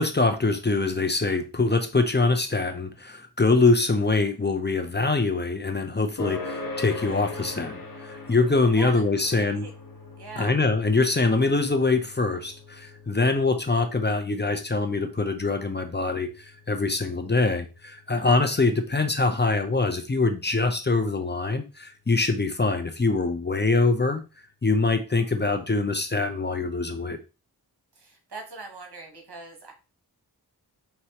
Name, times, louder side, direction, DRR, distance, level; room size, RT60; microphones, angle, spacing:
voice 1, 0.0-9.7 10.4-16.3 16.7-24.2 24.6-27.2, left 3 dB, 25° left, 5 dB, 0.6 m, -24 dB
sound 1, 6.2-21.1, left 3 dB, 60° left, 1.3 m, -42 dB
voice 2, 8.7-9.7 10.2-10.5 27.9-29.7, right 3 dB, 75° right, 2 dB, 1.3 m, -41 dB
4.5 x 3.0 x 2.9 m, 0.31 s
wide cardioid pair, 50°, 39 cm